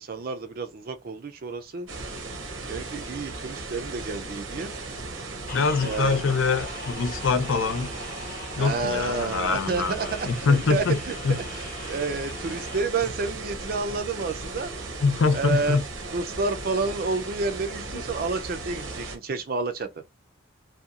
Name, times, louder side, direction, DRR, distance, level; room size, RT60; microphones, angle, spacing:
voice 1, 0.0-1.9 2.7-4.7 5.8-6.2 8.6-14.7 15.3-15.8 16.1-19.9, right 4 dB, 50° right, 0.4 m, -30 dB
sound 1, 1.9-19.2, right 3 dB, 80° right, 0.7 m, -36 dB
voice 2, 5.5-7.9 8.6-11.0 11.2-11.4 15.0-15.8 17.9-18.0, left 4 dB, 80° left, 0.5 m, -24 dB
sound 2, 5.5-12.8, left 3 dB, 45° left, 0.8 m, -42 dB
2.8 x 2.2 x 2.4 m
head